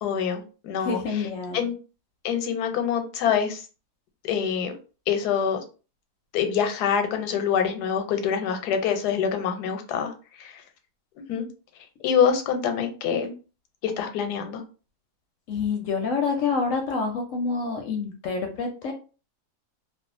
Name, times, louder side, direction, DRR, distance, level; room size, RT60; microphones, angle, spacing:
voice 1, 0.0-1.3 1.5-1.7 2.2-3.6 4.2-4.7 5.1-5.6 6.3-10.1 10.4-10.6 11.3-11.4 12.0-13.3 13.8-14.6, left 7 dB, 85° left, 6 dB, 1.1 m, -25 dB
voice 2, 0.8-1.6 15.5-18.9, left 4 dB, 70° left, 3 dB, 0.8 m, -27 dB
2.5 x 2.3 x 2.5 m, 0.35 s
omnidirectional pair, 1.7 m